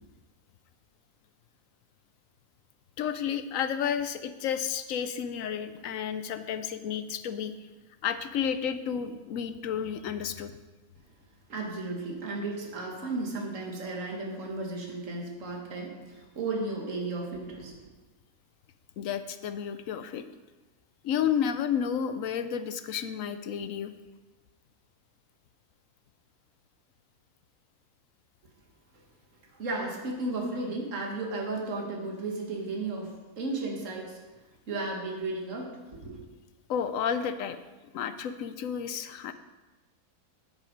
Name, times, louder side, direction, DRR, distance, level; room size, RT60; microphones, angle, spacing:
voice 1, 3.0-7.5 8.0-10.6 19.0-20.2 21.0-23.9 36.7-37.6 37.9-39.3, left 8 dB, 70° left, 11 dB, 0.9 m, -31 dB
voice 2, 11.5-17.9 29.5-34.2 34.7-36.2, right 2 dB, 55° right, 0 dB, 1.9 m, -34 dB
9.2 x 8.2 x 5.1 m, 1.2 s
omnidirectional pair, 1.6 m